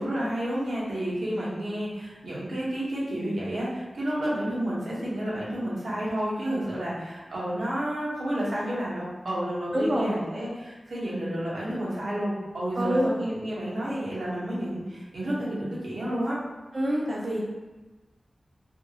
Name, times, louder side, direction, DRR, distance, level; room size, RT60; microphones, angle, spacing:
voice 1, 0.0-16.4, right 1 dB, 85° right, -7 dB, 0.9 m, -30 dB
voice 2, 9.7-10.1 12.7-13.1 16.7-17.4, equal, 45° right, -5 dB, 0.5 m, -25 dB
2.8 x 2.7 x 2.7 m, 1.2 s
wide cardioid pair, 100°, 0 cm